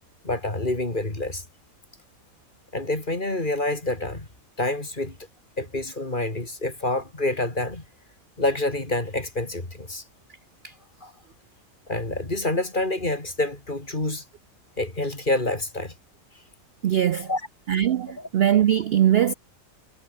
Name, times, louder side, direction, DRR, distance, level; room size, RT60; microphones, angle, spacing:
voice 1, 0.2-1.4 2.7-4.3 4.6-5.2 5.6-7.8 8.4-10.0 11.0-11.1 11.9-14.2 14.8-15.9 17.3-17.4 18.2-18.3, left 2 dB, 35° left, 4.0 m, -27 dB
voice 2, 16.8-17.3 17.7-19.3, right 10 dB, 60° right, 0.7 m, -21 dB
omnidirectional pair, 1.4 m